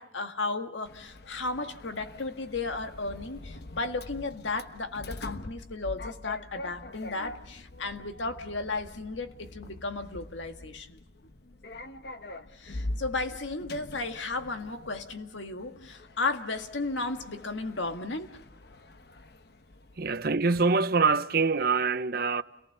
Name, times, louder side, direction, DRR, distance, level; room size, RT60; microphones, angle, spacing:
voice 1, 0.0-11.0 12.5-18.4, left 3 dB, 85° left, 1.8 m, -34 dB
Sliding door, 0.9-20.5, left 2 dB, 60° left, 1.1 m, -44 dB
voice 2, 20.0-22.4, right 4 dB, 55° right, 0.8 m, -25 dB
29.5 x 19.0 x 6.8 m
head